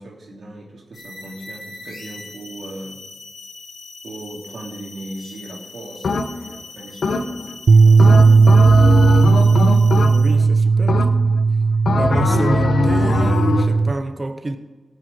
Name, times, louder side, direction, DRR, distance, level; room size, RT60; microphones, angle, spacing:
voice 1, 0.0-3.0 4.0-8.4, right 1 dB, 90° right, 2.7 m, -38 dB
sound 1, 0.9-10.5, left 3 dB, 60° left, 1.9 m, -40 dB
sound 2, 6.0-6.6 7.0-7.6 8.0-10.5 10.9-11.4 11.9-13.8, left 4 dB, 75° left, 1.1 m, -21 dB
sound 3, 7.7-13.9, right 4 dB, 70° right, 0.4 m, -14 dB
voice 2, 10.0-11.1 11.9-14.6, right 2 dB, 35° right, 1.1 m, -28 dB
18.0 x 6.6 x 5.1 m
wide cardioid pair, 105°, 0 cm